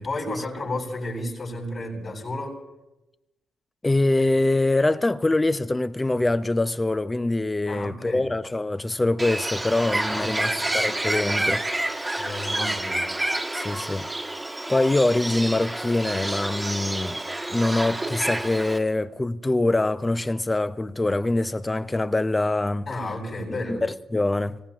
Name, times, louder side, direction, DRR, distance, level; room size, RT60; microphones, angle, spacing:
voice 1, 0.0-2.6 7.7-8.3 10.1-10.8 12.1-13.1 22.9-23.8, left 1 dB, 55° left, 7.1 m, -32 dB
voice 2, 3.8-12.1 13.5-14.1 14.7-17.2 17.5-22.9 23.7-24.6, left 2 dB, 25° left, 0.7 m, -24 dB
Bird, 9.2-18.8, right 1 dB, 20° right, 1.5 m, -28 dB
25.5 x 17.5 x 3.0 m
hypercardioid pair, 45°, 0 cm